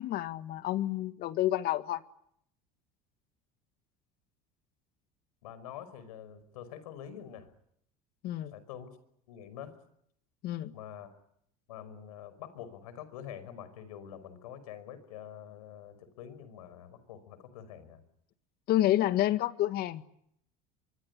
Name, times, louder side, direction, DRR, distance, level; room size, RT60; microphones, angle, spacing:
voice 1, 0.0-2.0 8.2-8.5 10.4-10.8 18.7-20.0, left 14 dB, 60° left, 11 dB, 1.9 m, -29 dB
voice 2, 5.4-7.5 8.5-9.0 9.3-9.7 10.7-11.1 11.7-18.0, left 9 dB, 90° left, 14 dB, 5.5 m, -46 dB
24.0 x 24.0 x 10.0 m, 0.72 s
supercardioid pair, 95°, 18 cm